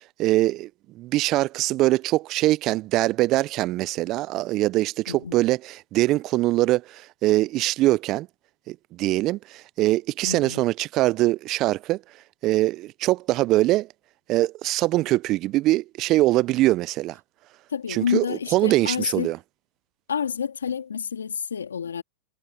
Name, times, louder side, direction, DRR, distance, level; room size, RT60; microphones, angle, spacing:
voice 1, 0.2-0.7 0.9-8.3 8.7-12.0 12.4-13.9 14.3-17.2 17.9-19.4, right 17 dB, 40° right, 0.4 m, -23 dB
voice 2, 5.1-5.4 10.2-10.6 17.7-19.3 20.1-22.0, left 7 dB, 85° left, 3.2 m, -29 dB
hypercardioid pair, 105°, 0 cm